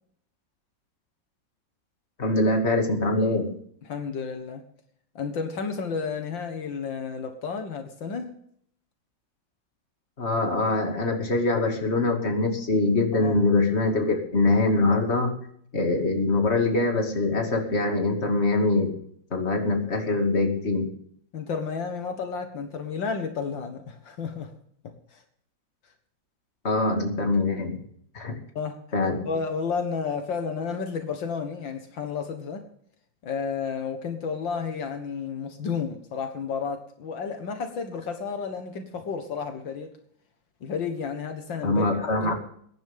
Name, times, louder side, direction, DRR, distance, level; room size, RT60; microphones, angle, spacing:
voice 1, 2.2-3.6 10.2-15.3 15.7-18.9 19.3-20.9 26.6-27.8 28.1-28.4 28.9-29.3 41.6-42.4, left 2 dB, 35° left, 2 dB, 2.7 m, -23 dB
voice 2, 3.9-4.6 5.2-8.3 13.2-13.4 21.3-24.5 24.8-25.2 28.6-28.8 29.2-32.7 33.2-39.9 40.6-41.8 42.2-42.4, left 5 dB, 75° left, 6 dB, 2.2 m, -32 dB
22.0 x 10.5 x 3.7 m, 0.64 s
omnidirectional pair, 2.1 m